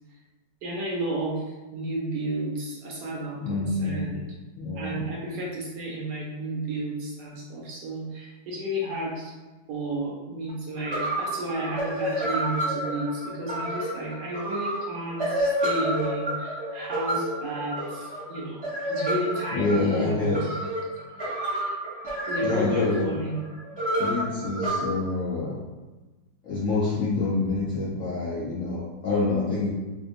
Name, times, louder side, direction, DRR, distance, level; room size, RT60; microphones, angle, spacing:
voice 1, 0.6-1.4 1.7-4.2 4.7-9.3 9.7-20.6 21.2-21.8 22.3-23.4, right 1 dB, 70° right, -3 dB, 1.1 m, -32 dB
voice 2, 3.4-4.1 4.6-5.0 19.5-20.4 22.4-23.0 24.0-25.6 26.4-29.7, left 3 dB, 60° left, -9 dB, 0.8 m, -27 dB
sound 1, 10.5-10.6 10.8-24.7, right 1 dB, 20° right, 1.3 m, -29 dB
3.6 x 2.6 x 2.5 m, 1.2 s
omnidirectional pair, 2.1 m